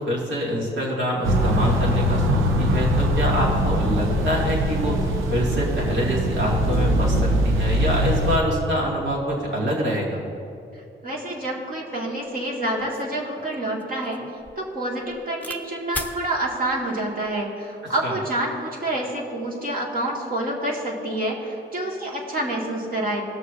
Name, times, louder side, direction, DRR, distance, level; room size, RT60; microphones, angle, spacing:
voice 1, 0.1-5.0 5.3-10.2 18.0-18.1, equal, 70° right, -4 dB, 2.4 m, -25 dB
sound 1, 1.2-8.4, equal, 90° right, 0.8 m, -22 dB
voice 2, 11.0-14.2 14.6-23.2, right 1 dB, 45° right, -3 dB, 2.3 m, -27 dB
sound 2, 12.3-12.4 12.8-15.6 15.9-16.2 17.0-17.4, left 2 dB, 10° left, 0.8 m, -38 dB
18.5 x 6.6 x 2.7 m, 2.6 s
cardioid pair, 55°, 20 cm